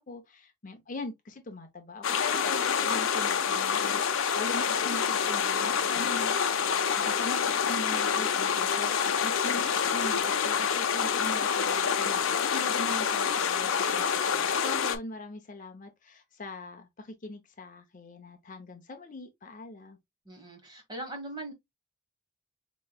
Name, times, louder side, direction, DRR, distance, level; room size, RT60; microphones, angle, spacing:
voice 1, 0.1-6.3 7.1-14.1 14.3-20.0, left 2 dB, 40° left, 0.7 m, -41 dB
sound 1, 2.0-15.0, left 7 dB, 85° left, 0.5 m, -27 dB
voice 2, 20.2-21.5, right 1 dB, 20° right, 1.3 m, -40 dB
4.5 x 3.1 x 2.3 m
head